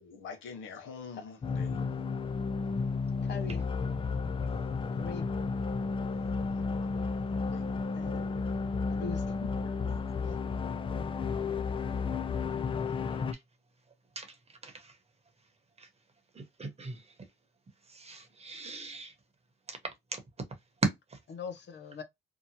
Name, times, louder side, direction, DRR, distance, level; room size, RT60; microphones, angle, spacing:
voice 1, 0.0-2.0 6.1-6.6 7.0-7.1 7.5-7.7 8.0-9.1 9.4-10.4, left 5 dB, 80° left, 1.0 m, -47 dB
sound 1, 1.4-13.3, left 4 dB, 25° left, 0.4 m, -32 dB
voice 2, 3.2-3.6 5.0-5.3 7.9-8.5 9.0-9.5 21.3-22.0, left 5 dB, 60° left, 0.7 m, -42 dB
voice 3, 14.6-14.9 15.8-15.9 16.3-17.0 17.9-19.1 19.7-20.2 20.8-21.2, right 3 dB, 30° right, 1.0 m, -37 dB
2.9 x 2.1 x 2.8 m
cardioid pair, 90°, 20 cm